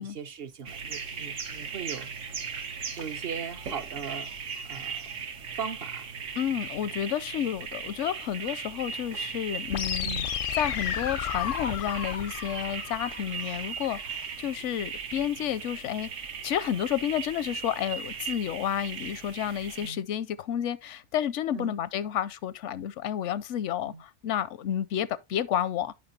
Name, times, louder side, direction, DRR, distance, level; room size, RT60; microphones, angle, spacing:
voice 1, 0.0-2.1 3.0-4.3 4.7-5.0 5.5-6.1 10.0-10.3 19.8-20.0 21.5-21.8 23.9-24.0, right 6 dB, 55° right, 0.9 m, -38 dB
sound 1, 0.7-19.9, right 6 dB, 80° right, 1.5 m, -38 dB
voice 2, 6.4-10.1 10.5-16.1 16.4-25.9, left 10 dB, 80° left, 0.9 m, -30 dB
sound 2, 9.7-13.7, left 10 dB, 60° left, 0.6 m, -33 dB
9.6 x 5.5 x 2.7 m
omnidirectional pair, 1.3 m